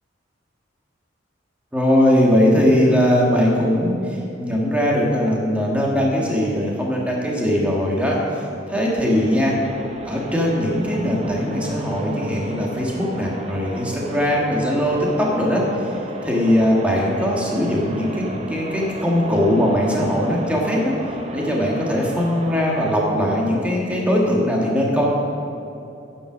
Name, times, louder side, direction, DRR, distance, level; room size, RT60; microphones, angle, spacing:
voice 1, 1.7-8.2 8.7-9.5 10.0-15.7 16.2-18.2 18.5-20.9 21.3-25.1, equal, 5° right, -3 dB, 1.5 m, -20 dB
sound 1, 9.1-22.9, right 1 dB, 30° right, 0.6 m, -34 dB
9.8 x 7.2 x 6.2 m, 2.8 s
head